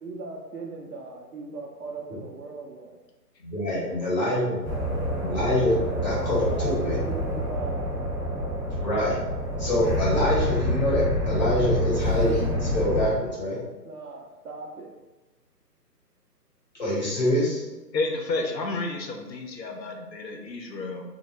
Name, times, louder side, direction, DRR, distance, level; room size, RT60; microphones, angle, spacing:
voice 1, 0.0-3.0 3.7-4.7 6.5-8.1 13.5-14.9 18.4-18.8, right 3 dB, 65° right, 0 dB, 0.6 m, -39 dB
voice 2, 3.4-4.6 5.2-7.0 8.7-9.2 9.6-13.6 16.8-17.6, left 1 dB, 25° left, -8 dB, 0.7 m, -25 dB
sound 1, 4.6-13.1, equal, 15° right, 0.6 m, -27 dB
voice 3, 17.9-21.0, left 3 dB, 85° left, 3 dB, 0.6 m, -31 dB
2.1 x 2.1 x 3.0 m, 1.1 s
figure-of-eight pair, 140°, 49 cm